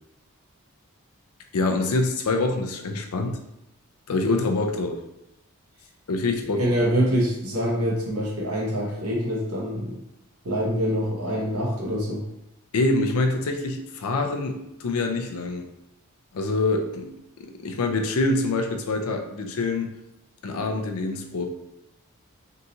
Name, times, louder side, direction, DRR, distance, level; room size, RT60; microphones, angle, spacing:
voice 1, 1.5-3.4 4.1-5.0 6.1-6.8 12.7-15.7 16.3-17.1 17.4-19.9 20.4-21.5, left 2 dB, 85° left, 4 dB, 0.5 m, -25 dB
voice 2, 6.6-9.9 10.4-12.2, equal, 85° right, -4 dB, 1.0 m, -25 dB
3.6 x 2.6 x 2.8 m, 0.85 s
head